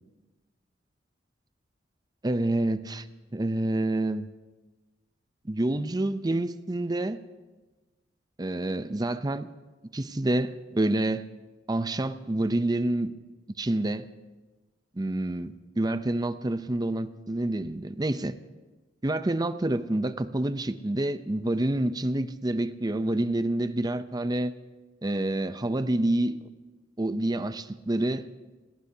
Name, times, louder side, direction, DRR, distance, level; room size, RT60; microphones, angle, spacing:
voice 1, 2.2-3.0 3.3-4.3 5.5-7.2 8.4-9.5 9.9-11.3 11.7-13.1 13.6-14.1 15.0-18.3 19.0-24.5 25.0-26.4 27.0-28.3, right 1 dB, 20° right, 0.6 m, -28 dB
28.0 x 18.0 x 2.8 m
head